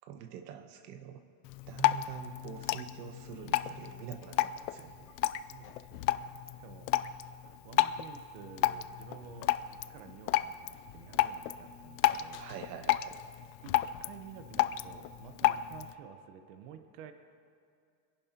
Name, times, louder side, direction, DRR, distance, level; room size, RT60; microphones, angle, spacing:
voice 1, 0.0-1.2 1.7-5.1 12.4-13.2, right 9 dB, 85° right, 7 dB, 1.2 m, -45 dB
Drip, 1.4-15.9, left 14 dB, 90° left, 0.6 m, -33 dB
voice 2, 5.2-6.3 6.6-7.2 7.6-9.5 9.9-12.4 13.6-17.1, right 9 dB, 60° right, 8 dB, 1.1 m, -51 dB
24.0 x 11.0 x 2.9 m, 2.4 s
supercardioid pair, 155°, 48 cm